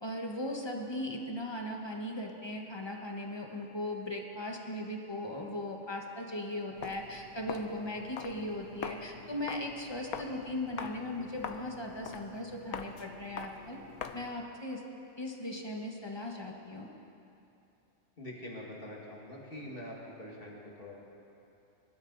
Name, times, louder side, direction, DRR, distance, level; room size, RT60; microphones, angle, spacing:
voice 1, 0.0-13.8 14.1-14.8 15.2-16.9, left 1 dB, 20° left, 1 dB, 1.3 m, -38 dB
Walk footsteps, 6.7-14.4, left 7 dB, 80° left, 1.2 m, -44 dB
voice 2, 18.2-21.0, left 1 dB, 40° left, -3 dB, 2.2 m, -44 dB
23.5 x 12.5 x 4.0 m, 2.8 s
omnidirectional pair, 1.5 m